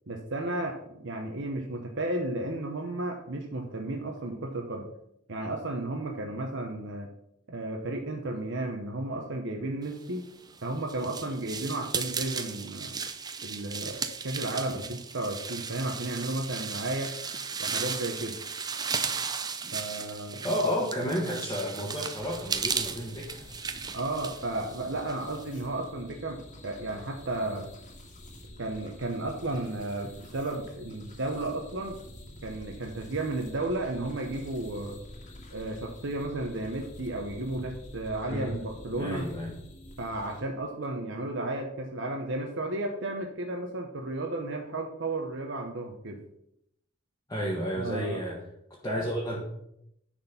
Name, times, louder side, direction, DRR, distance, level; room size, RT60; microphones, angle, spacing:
voice 1, 0.1-4.9 5.3-7.1 7.5-10.3 10.6-12.9 13.4-17.2 17.6-18.4 19.7-20.4 23.9-27.7 28.6-32.0 32.4-35.0 35.5-39.3 40.0-46.2 47.7-48.2, right 2 dB, 65° right, 3 dB, 1.0 m, -33 dB
sound 1, 10.3-25.4, right 5 dB, 20° right, 0.6 m, -35 dB
voice 2, 20.4-23.4 38.3-38.6 39.0-39.6 47.3-48.4 48.7-49.4, equal, 15° left, -5 dB, 1.5 m, -31 dB
sound 2, 22.2-40.4, left 1 dB, 40° left, 1.9 m, -48 dB
10.5 x 4.4 x 5.8 m, 0.77 s
head